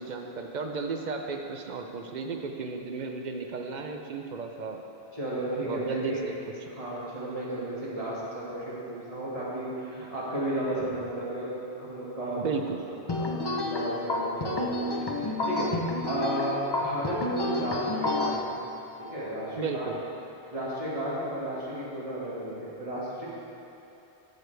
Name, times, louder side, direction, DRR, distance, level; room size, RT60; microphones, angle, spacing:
voice 1, 0.0-4.8 5.6-6.3 12.4-12.8 19.5-20.0, right 4 dB, 50° right, 3 dB, 0.7 m, -34 dB
voice 2, 5.1-6.2 6.7-12.4 13.1-15.7 16.0-18.5 19.1-19.9 20.5-23.3, right 1 dB, 35° right, -8 dB, 1.9 m, -33 dB
sound 1, 13.1-18.4, left 2 dB, 30° left, 0.6 m, -29 dB
12.0 x 6.7 x 3.4 m, 3.0 s
omnidirectional pair, 1.1 m